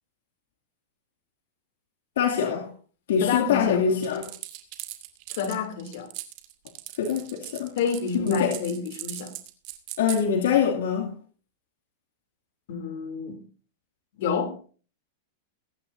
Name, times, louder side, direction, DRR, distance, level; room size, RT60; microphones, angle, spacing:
voice 1, 2.2-2.7 3.1-4.3 7.0-7.7 8.1-8.6 10.0-11.1, left 7 dB, 75° left, 2.5 m, -24 dB
voice 2, 3.2-3.8 5.3-6.1 7.8-9.3 12.7-13.4 14.2-14.5, left 6 dB, 60° left, 3.1 m, -29 dB
sound 1, 4.0-10.2, right 17 dB, 45° right, 2.4 m, -39 dB
22.5 x 10.5 x 2.7 m
supercardioid pair, 145°, 0 cm